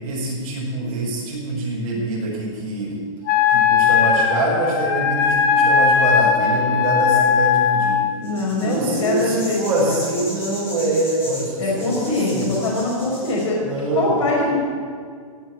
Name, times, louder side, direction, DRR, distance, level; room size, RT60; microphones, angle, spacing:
voice 1, 0.0-3.0 3.5-8.0 8.6-12.5 13.6-14.2, right 2 dB, 30° right, -5 dB, 5.0 m, -25 dB
Wind instrument woodwind instrument, 3.3-8.1, left 6 dB, 35° left, 1.3 m, -18 dB
voice 2, 8.2-9.6 9.9-10.0 11.6-13.6 13.9-14.6, left 2 dB, 60° left, -4 dB, 4.9 m, -22 dB
sound 1, 8.2-13.4, equal, 10° left, 2.8 m, -35 dB
16.5 x 7.3 x 9.3 m, 2.1 s
hypercardioid pair, 170°, 18 cm